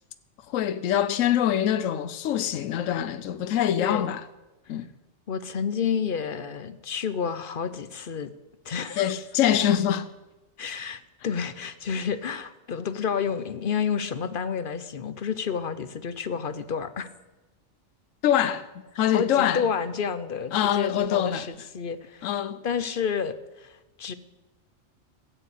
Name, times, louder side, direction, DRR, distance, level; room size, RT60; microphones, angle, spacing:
voice 1, 0.5-4.2 4.7-4.9 9.0-10.1 18.2-18.7 19.0-19.7 20.5-21.5 22.2-22.6, left 10 dB, 85° left, 1.0 m, -24 dB
voice 2, 3.8-4.1 5.3-8.3 8.6-9.1 10.6-17.1 19.1-22.3 22.6-24.1, left 6 dB, 50° left, 0.9 m, -30 dB
14.0 x 9.1 x 8.4 m
omnidirectional pair, 1.3 m